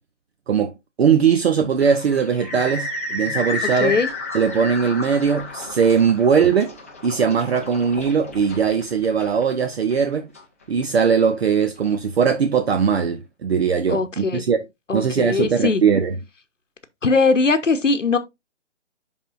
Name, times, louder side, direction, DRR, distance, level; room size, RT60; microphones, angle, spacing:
voice 1, 1.0-4.0 4.3-6.7 7.0-10.3 10.7-14.6 14.9-16.1, right 6 dB, 55° right, 0.7 m, -20 dB
sound 1, 1.8-11.1, left 2 dB, 10° left, 0.5 m, -32 dB
voice 2, 13.9-14.5 14.9-15.8 17.0-18.2, left 4 dB, 90° left, 0.9 m, -20 dB
10.5 x 3.6 x 2.5 m
figure-of-eight pair, 140°, 37 cm